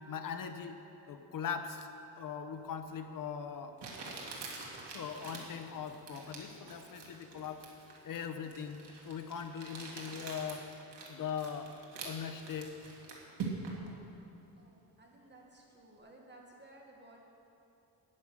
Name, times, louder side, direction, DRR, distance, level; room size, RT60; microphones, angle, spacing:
voice 1, 0.1-1.9 2.2-3.8 4.9-7.7 8.0-10.7 11.1-11.7 12.0-12.7, left 7 dB, 55° left, 7 dB, 0.9 m, -40 dB
Crumpling crinkling, 2.9-3.0 3.8-13.9, right 4 dB, 85° right, 2.2 m, -45 dB
voice 2, 14.6-17.2, right 1 dB, 25° right, -1 dB, 1.5 m, -57 dB
11.0 x 9.7 x 7.5 m, 2.9 s
wide cardioid pair, 155°, 40 cm